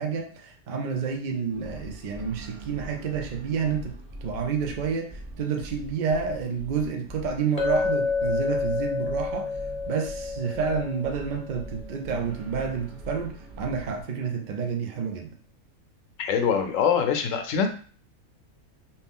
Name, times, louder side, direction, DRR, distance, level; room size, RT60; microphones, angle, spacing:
voice 1, 0.0-3.9 4.2-9.5 9.9-15.4, right 6 dB, 90° right, 3 dB, 0.4 m, -29 dB
sound 1, 1.5-14.0, right 2 dB, 45° right, 0.7 m, -42 dB
Chink clink, 7.6-11.7, left 5 dB, 40° left, 0.5 m, -29 dB
voice 2, 16.2-17.7, left 7 dB, 70° left, 7 dB, 0.9 m, -23 dB
2.9 x 2.7 x 3.6 m, 0.43 s
omnidirectional pair, 1.5 m